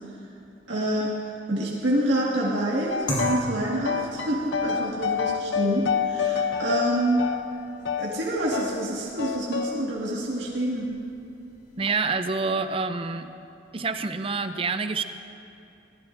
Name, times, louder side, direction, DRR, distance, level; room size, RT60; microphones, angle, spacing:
voice 1, 0.7-1.1 1.5-7.2 8.0-10.9, right 1 dB, 85° right, -5 dB, 1.9 m, -27 dB
sound 1, 2.9-3.5 3.8-8.1 8.5-8.8 9.2-9.8, left 6 dB, 85° left, 0.7 m, -28 dB
sound 2, 3.1-11.9, left 1 dB, 30° left, 4.1 m, -40 dB
voice 2, 11.8-13.3 13.7-15.0, right 4 dB, 30° right, 9 dB, 0.5 m, -27 dB
21.5 x 16.5 x 2.6 m, 2.7 s
head